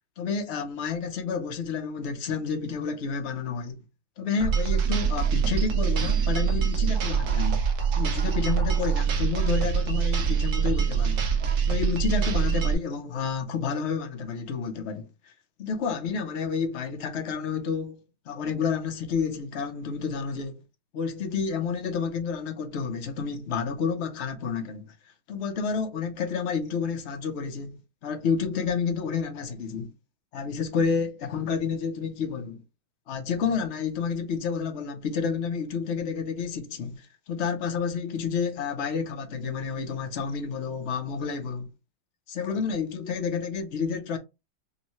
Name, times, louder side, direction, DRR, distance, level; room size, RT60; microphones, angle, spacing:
voice 1, 0.2-3.8 4.2-7.6 7.9-11.3 11.7-15.1 15.6-18.0 18.3-20.6 20.9-24.9 25.3-29.9 30.3-32.6 33.1-41.7 42.3-44.2, left 5 dB, 55° left, 0.7 m, -30 dB
sound 1, 4.4-12.7, right 7 dB, 70° right, 1.1 m, -24 dB
5.4 x 2.1 x 2.9 m
omnidirectional pair, 2.0 m